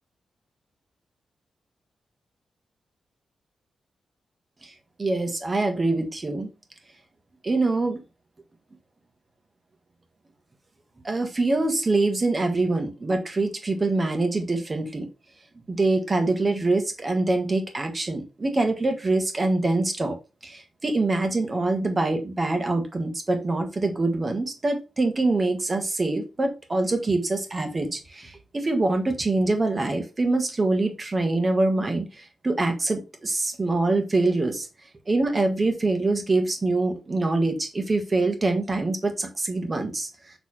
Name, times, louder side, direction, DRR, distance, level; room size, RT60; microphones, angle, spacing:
voice 1, 5.0-6.5 7.4-8.0 11.0-15.1 15.7-20.2 20.4-34.7 35.1-40.1, right 2 dB, 25° right, 5 dB, 1.3 m, -24 dB
6.6 x 3.4 x 4.2 m, 0.28 s
wide cardioid pair, 150°, 0 cm